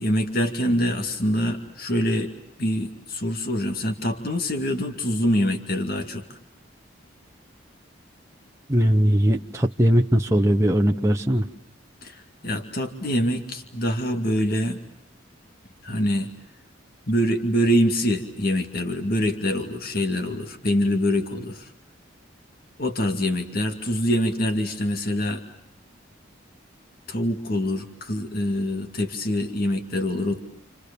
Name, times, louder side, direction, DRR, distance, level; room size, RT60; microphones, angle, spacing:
voice 1, 0.0-2.3 2.6-6.2 12.0-14.8 15.8-16.3 17.1-21.7 22.8-25.4 27.1-30.4, equal, 50° left, 6 dB, 2.3 m, -25 dB
voice 2, 8.7-11.5, equal, 15° right, 2 dB, 1.0 m, -20 dB
30.0 x 28.5 x 6.9 m, 0.78 s
head